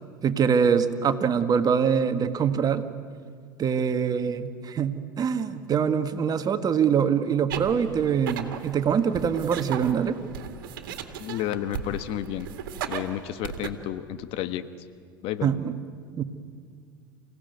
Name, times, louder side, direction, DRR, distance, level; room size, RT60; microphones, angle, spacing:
voice 1, 0.2-2.8 3.6-10.2 15.4-15.7 16.2-16.3, right 7 dB, 35° right, 9 dB, 1.6 m, -24 dB
sound 1, 7.5-13.7, right 8 dB, 70° right, 2.0 m, -37 dB
voice 2, 11.2-12.5 12.8-14.7 15.2-15.5, left 12 dB, 55° left, 12 dB, 1.2 m, -31 dB
28.5 x 17.0 x 9.5 m, 2.2 s
hypercardioid pair, 75°, 11 cm